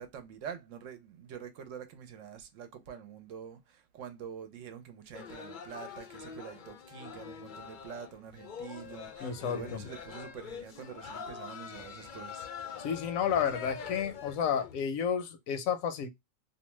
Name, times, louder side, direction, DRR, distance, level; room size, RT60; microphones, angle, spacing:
voice 1, 0.0-12.5, right 8 dB, 70° right, 0.9 m, -46 dB
sound 1, 5.1-14.8, left 7 dB, 60° left, 0.5 m, -44 dB
voice 2, 9.2-9.8 12.8-16.1, left 7 dB, 80° left, 1.0 m, -31 dB
2.6 x 2.1 x 3.0 m
omnidirectional pair, 1.4 m